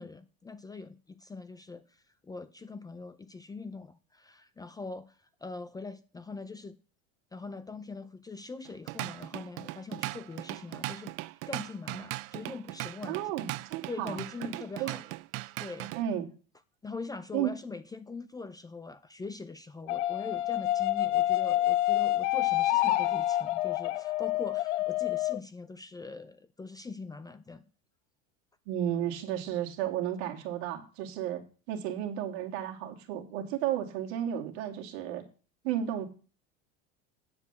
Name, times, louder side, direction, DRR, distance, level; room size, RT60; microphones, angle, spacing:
voice 1, 0.0-6.8 7.3-11.1 11.5-13.2 13.9-15.0 15.6-15.9 16.8-27.6, left 3 dB, 10° left, 12 dB, 0.5 m, -42 dB
Drum kit / Drum, 8.6-16.0, right 20 dB, 45° right, 0.4 m, -39 dB
voice 2, 13.1-14.2 14.8-15.0 16.0-16.3 17.3-17.5 28.7-35.2 35.6-36.1, right 11 dB, 70° right, 3 dB, 2.4 m, -33 dB
sound 1, 19.9-25.4, left 15 dB, 90° left, 0.7 m, -27 dB
9.6 x 4.8 x 6.9 m, 0.37 s
supercardioid pair, 125°, 34 cm